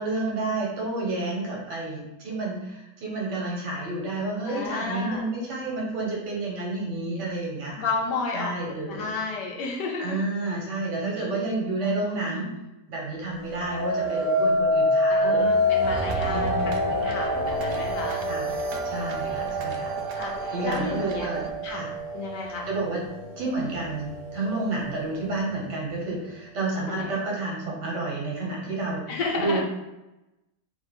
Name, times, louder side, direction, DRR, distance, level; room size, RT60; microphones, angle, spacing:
voice 1, 0.0-7.9 8.3-9.1 10.0-12.5 12.9-15.5 16.3-16.8 18.3-18.5 18.8-20.0 20.5-21.9 22.7-23.0 23.4-29.1 29.4-29.6, right 2 dB, 90° right, -3 dB, 1.9 m, -30 dB
voice 2, 4.5-5.2 7.8-10.2 11.8-11.9 15.1-18.2 19.3-19.5 20.1-21.3 21.6-21.8 22.1-22.7 26.9-27.3 29.1-29.6, left 4 dB, 80° left, 0 dB, 1.5 m, -32 dB
sound 1, 13.4-22.6 23.1-23.6, left 1 dB, 45° left, 1.0 m, -26 dB
sound 2, 15.8-21.5, right 4 dB, 70° right, 0.7 m, -33 dB
4.1 x 2.5 x 4.4 m, 0.98 s
omnidirectional pair, 1.8 m